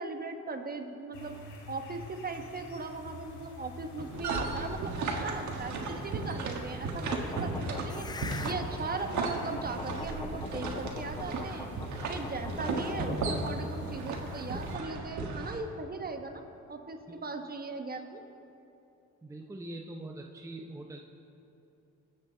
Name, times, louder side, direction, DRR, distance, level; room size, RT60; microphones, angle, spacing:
voice 1, 0.0-1.4 1.7-8.1 8.4-11.7 12.1-16.4 16.7-18.2, right 3 dB, 30° right, 6 dB, 1.1 m, -38 dB
sound 1, 1.1-14.8, left 3 dB, 80° left, 1.9 m, -45 dB
sound 2, 4.0-15.6, right 3 dB, 70° right, 1.5 m, -35 dB
sound 3, 7.1-13.7, left 4 dB, 15° left, 0.4 m, -42 dB
voice 2, 19.2-21.0, right 1 dB, 10° right, 1 dB, 0.7 m, -43 dB
20.0 x 8.0 x 3.9 m, 2.9 s
cardioid pair, 90°, 30 cm